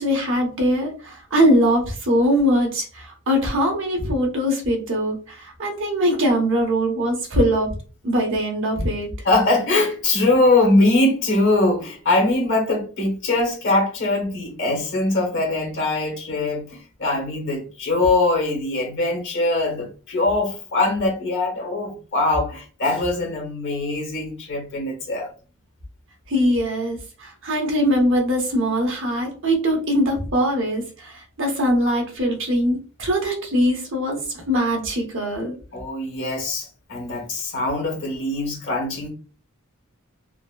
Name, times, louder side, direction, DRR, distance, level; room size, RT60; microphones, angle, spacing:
voice 1, 0.0-7.7 8.0-9.1 26.3-35.5, equal, 60° right, 1.0 m, -22 dB
voice 2, 9.2-25.3 35.7-39.1, left 2 dB, 55° left, 1.1 m, -22 dB
3.8 x 2.0 x 2.2 m
head